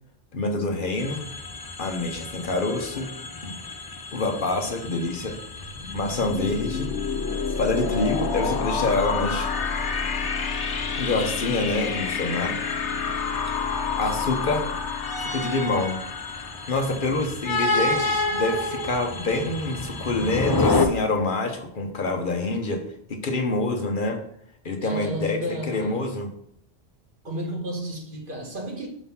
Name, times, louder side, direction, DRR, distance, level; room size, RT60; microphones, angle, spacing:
voice 1, 0.3-1.3 1.8-3.1 3.4-3.6 4.1-5.4 5.9-6.9 7.6-9.5 11.0-12.6 14.0-14.7 15.2-16.0 16.7-22.8 23.1-24.2 24.6-25.4 25.7-26.3, left 2 dB, 50° left, 1.1 m, -26 dB
sound 1, 1.0-20.9, left 3 dB, 35° left, 0.4 m, -31 dB
sound 2, 5.5-17.2, left 5 dB, 90° left, 1.1 m, -29 dB
voice 2, 24.8-26.1 27.2-28.9, equal, 50° right, 1.6 m, -32 dB
6.0 x 3.9 x 5.5 m
omnidirectional pair, 1.1 m